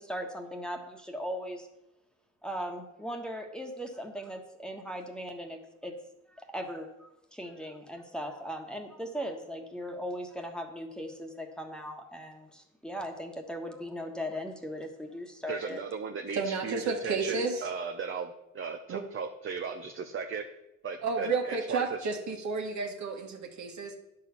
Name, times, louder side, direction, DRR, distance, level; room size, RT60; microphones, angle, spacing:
voice 1, 0.0-1.7 2.4-5.9 6.3-15.8, equal, 5° left, 2 dB, 1.4 m, -38 dB
voice 2, 15.5-20.4 20.8-21.8, right 5 dB, 45° right, 5 dB, 0.8 m, -36 dB
voice 3, 16.3-17.7 18.9-19.0 21.0-24.0, right 4 dB, 70° right, 3 dB, 1.7 m, -32 dB
10.0 x 4.8 x 6.9 m, 0.89 s
cardioid pair, 90°, 30 cm